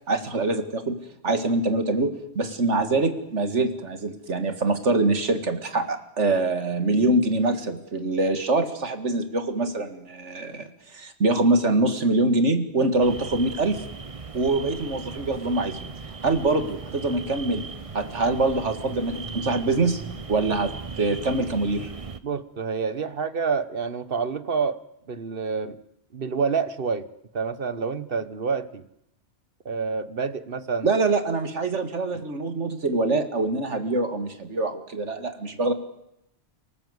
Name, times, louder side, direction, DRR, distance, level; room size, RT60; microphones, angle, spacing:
voice 1, 0.1-1.0 1.2-13.8 14.3-15.9 16.2-17.7 17.9-21.9 30.8-35.7, right 2 dB, 80° right, 8 dB, 2.4 m, -24 dB
sound 1, 13.0-22.2, right 4 dB, 30° right, 1.0 m, -38 dB
voice 2, 22.2-24.8 25.1-25.8 26.1-27.1 27.3-28.9 29.6-30.9, right 5 dB, 50° right, 13 dB, 1.4 m, -28 dB
29.5 x 19.0 x 8.1 m, 0.84 s
omnidirectional pair, 1.2 m